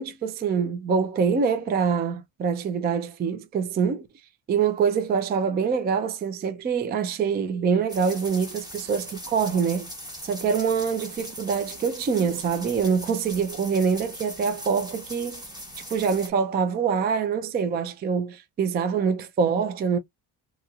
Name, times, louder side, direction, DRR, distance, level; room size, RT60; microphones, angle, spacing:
voice 1, 0.0-4.1 4.5-9.9 10.2-15.4 15.9-20.0, right 6 dB, 25° right, 0.3 m, -25 dB
sound 1, 7.9-16.3, equal, 10° right, 0.9 m, -40 dB
2.9 x 2.9 x 2.3 m
cardioid pair, 165°, 45 cm